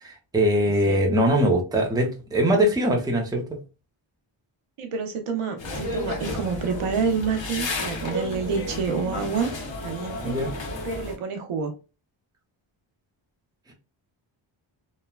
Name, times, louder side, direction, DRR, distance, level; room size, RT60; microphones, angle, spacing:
voice 1, 0.0-3.6 10.2-10.5, equal, 10° right, 0.6 m, -22 dB
voice 2, 4.8-9.5 9.8-10.4 10.8-11.7, right 5 dB, 85° right, 0.8 m, -28 dB
sound 1, 5.6-11.2, left 2 dB, 60° left, 0.9 m, -32 dB
3.1 x 2.1 x 2.2 m
wide cardioid pair, 100°, 50 cm